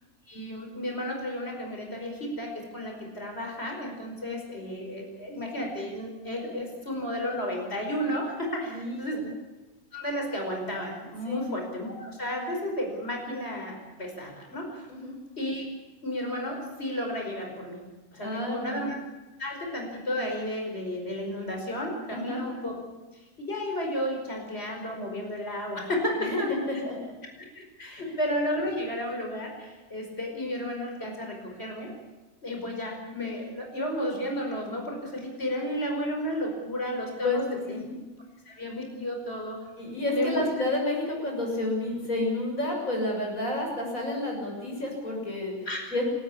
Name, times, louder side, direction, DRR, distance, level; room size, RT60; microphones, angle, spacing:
voice 1, 0.3-9.2 9.9-14.9 15.4-15.6 16.0-17.8 18.1-18.9 19.4-22.7 23.4-26.5 27.6-31.9 32.4-37.4 37.7-37.8 38.5-39.7 40.1-40.5 45.7-46.0, equal, 45° left, 1 dB, 5.5 m, -32 dB
voice 2, 8.7-9.3 11.3-11.4 14.9-15.2 18.2-18.9 22.1-22.4 26.2-26.4 26.7-27.1 28.0-28.1 37.2-37.9 39.8-46.0, left 2 dB, 70° left, 0 dB, 7.4 m, -30 dB
29.5 x 14.0 x 8.6 m, 1.1 s
omnidirectional pair, 1.5 m